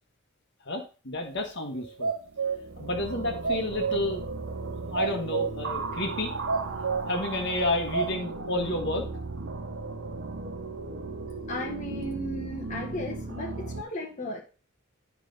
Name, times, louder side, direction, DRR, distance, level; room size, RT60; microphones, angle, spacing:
voice 1, 0.6-2.1 2.8-4.5 4.9-6.3 7.1-9.1, left 2 dB, 55° left, 1.5 m, -30 dB
sound 1, 1.2-1.3 1.8-2.7 3.2-4.1 4.6-4.7 4.9-5.6 6.1-6.2 6.5-7.2 7.6-8.1, right 5 dB, 90° right, 1.8 m, -29 dB
sound 2, 2.2-13.8, right 3 dB, 65° right, 0.9 m, -36 dB
voice 2, 11.5-14.4, left 1 dB, 35° left, 1.4 m, -35 dB
11.0 x 5.0 x 4.0 m
head